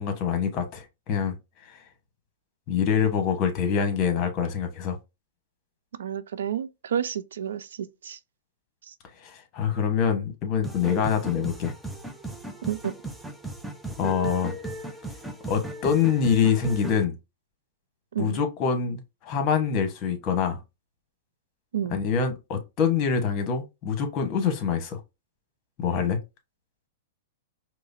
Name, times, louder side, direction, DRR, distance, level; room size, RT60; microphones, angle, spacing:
voice 1, 0.0-1.3 2.7-5.0 9.2-11.7 14.0-14.5 15.5-17.1 18.2-20.6 21.9-25.0 25.8-26.2, left 7 dB, 40° left, 1.0 m, -25 dB
voice 2, 5.9-8.2 12.7-12.9 18.1-18.4 21.7-22.0, right 9 dB, 80° right, 0.4 m, -30 dB
sound 1, 10.6-17.0, right 2 dB, 5° right, 0.6 m, -37 dB
4.8 x 2.0 x 2.5 m
hypercardioid pair, 120°, 0 cm